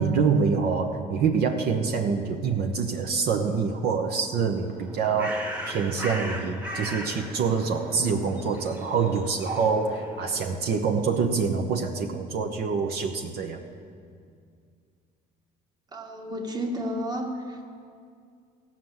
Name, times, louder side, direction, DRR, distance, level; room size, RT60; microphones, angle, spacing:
voice 1, 0.0-13.6, right 5 dB, 65° right, 3 dB, 0.9 m, -26 dB
Bird, 4.7-10.7, right 1 dB, 10° right, 1.3 m, -38 dB
voice 2, 15.9-17.6, equal, 25° right, 2 dB, 1.5 m, -32 dB
15.0 x 5.9 x 7.9 m, 2.3 s
cardioid pair, 110°, 17 cm